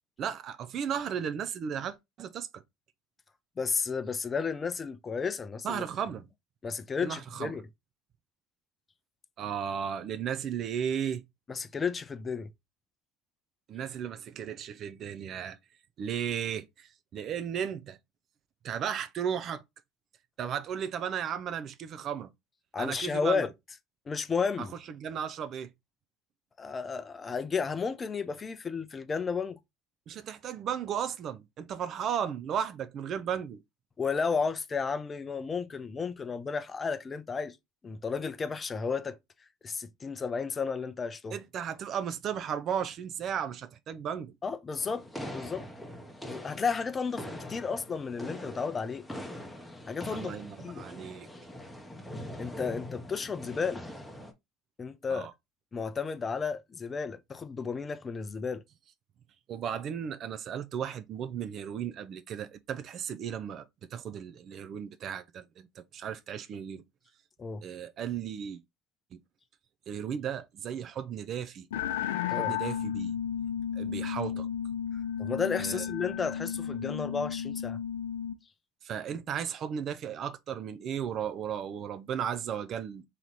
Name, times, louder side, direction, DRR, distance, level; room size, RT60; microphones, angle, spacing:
voice 1, 0.2-2.6 5.6-6.3 7.0-7.6 9.4-11.3 13.7-15.6 16.0-18.0 18.6-19.6 20.4-22.3 22.8-23.5 24.6-25.7 30.1-33.6 41.3-44.4 50.1-51.3 55.1-55.3 59.5-66.8 67.6-68.6 69.1-69.2 69.9-71.7 72.4-73.1 73.8-74.5 75.6-75.8 78.8-83.0, right 8 dB, 50° right, 0.5 m, -35 dB
voice 2, 3.6-5.8 6.6-7.6 11.5-12.5 22.7-23.5 24.1-24.7 26.6-29.6 34.0-37.6 37.8-39.2 39.6-41.3 44.4-45.0 45.3-45.7 46.3-49.0 49.9-50.3 50.6-50.8 52.4-53.8 54.8-55.3 55.7-58.6 67.4-67.6 72.3-72.5 75.2-77.8, left 5 dB, 30° left, 0.6 m, -32 dB
sound 1, 44.8-54.3, left 1 dB, 5° left, 0.9 m, -43 dB
sound 2, 71.7-78.4, left 9 dB, 85° left, 0.5 m, -33 dB
3.1 x 2.9 x 3.9 m
hypercardioid pair, 85°, 0 cm